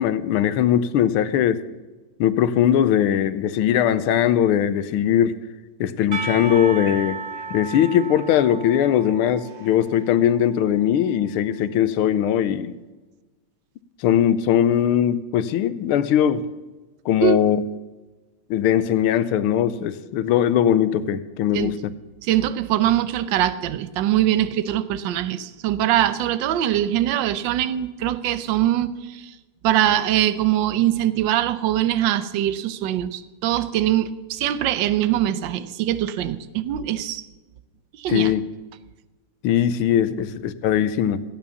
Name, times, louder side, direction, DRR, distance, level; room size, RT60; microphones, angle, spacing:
voice 1, 0.0-1.6 2.2-5.4 5.8-7.2 7.5-12.8 14.0-16.4 17.0-17.6 18.5-21.8 38.1-38.4 39.4-41.2, left 10 dB, 85° left, 14 dB, 1.6 m, -20 dB
Percussion / Church bell, 6.1-11.1, right 4 dB, 35° right, 1.0 m, -35 dB
voice 2, 22.2-29.3 29.6-37.3 38.0-38.3, right 12 dB, 65° right, 14 dB, 1.3 m, -22 dB
15.5 x 9.0 x 7.0 m, 1.2 s
omnidirectional pair, 2.4 m